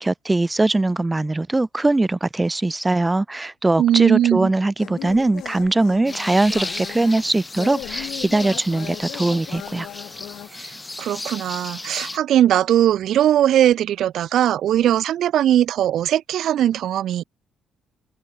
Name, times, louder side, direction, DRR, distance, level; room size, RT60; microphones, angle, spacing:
voice 1, 0.0-9.9, right 2 dB, 10° right, 0.7 m, -21 dB
voice 2, 3.8-4.5 11.0-17.2, right 11 dB, 65° right, 2.5 m, -19 dB
sound 1, 4.8-10.5, left 13 dB, 80° left, 2.1 m, -37 dB
sound 2, 6.1-12.2, left 2 dB, 15° left, 2.4 m, -34 dB
cardioid pair, 140°, 0 cm